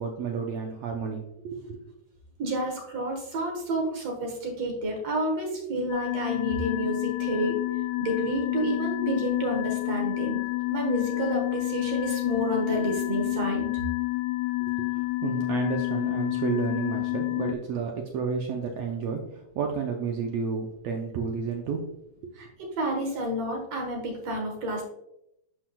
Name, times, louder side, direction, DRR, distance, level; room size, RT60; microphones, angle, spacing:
voice 1, 0.0-1.8 14.6-21.8 22.2-22.3, right 5 dB, 80° right, 2 dB, 1.5 m, -31 dB
voice 2, 2.4-7.6 8.0-10.4 10.7-13.7 22.4-22.5 22.8-24.8, right 1 dB, 60° right, 1 dB, 2.1 m, -30 dB
sound 1, 5.9-17.5, left 22 dB, 80° left, 1.7 m, -29 dB
11.5 x 4.5 x 2.3 m, 0.82 s
omnidirectional pair, 3.6 m